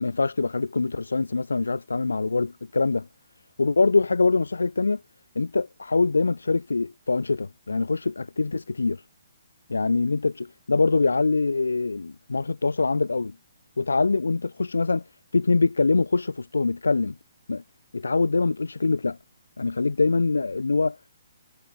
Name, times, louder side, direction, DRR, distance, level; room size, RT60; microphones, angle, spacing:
voice 1, 0.0-3.1 3.6-5.0 5.4-9.0 9.7-13.3 13.8-15.0 15.3-17.2 17.5-17.6 17.9-19.2 19.6-21.1, left 3 dB, 70° left, 0.4 m, -24 dB
figure-of-eight pair, 130°, 0 cm